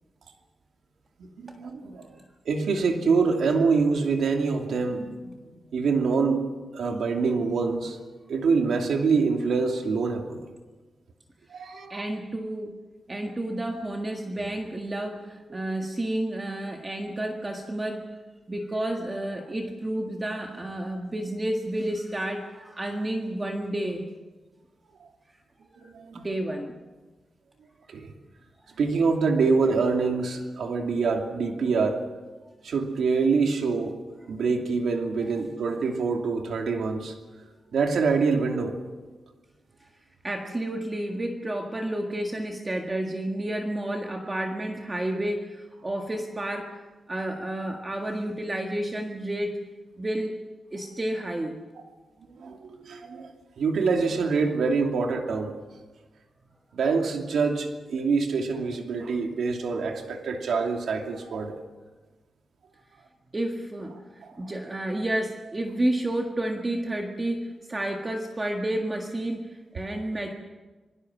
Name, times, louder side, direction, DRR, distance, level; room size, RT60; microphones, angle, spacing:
voice 1, 1.2-2.1 2.5-5.3 5.7-6.4 6.7-8.0 8.3-10.4 11.5-12.1 15.5-15.6 25.8-26.2 27.9-28.1 28.8-32.0 32.6-33.9 34.3-37.1 37.7-38.8 52.3-55.5 56.7-61.6 64.2-64.5, right 4 dB, 85° right, 3 dB, 2.7 m, -25 dB
voice 2, 11.9-12.7 13.1-18.1 18.5-24.1 25.7-25.8 26.1-26.8 39.8-39.9 40.2-46.8 47.1-49.6 50.0-50.3 50.7-51.6 63.3-64.0 64.4-70.4, right 1 dB, 20° right, 2 dB, 1.7 m, -30 dB
27.0 x 23.5 x 6.2 m, 1.3 s
wide cardioid pair, 165°, 0 cm